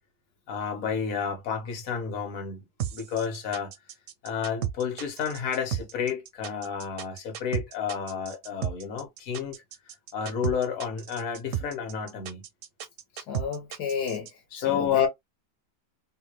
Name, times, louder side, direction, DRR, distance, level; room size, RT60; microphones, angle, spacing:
voice 1, 0.5-2.6 2.9-3.7 4.2-9.6 10.1-12.4 14.5-15.1, left 7 dB, 60° left, 1.4 m, -30 dB
sound 1, 2.8-14.3, right 10 dB, 70° right, 0.7 m, -33 dB
voice 2, 13.2-14.3 14.6-15.1, left 7 dB, 80° left, 1.5 m, -31 dB
3.1 x 2.2 x 3.0 m
omnidirectional pair, 1.7 m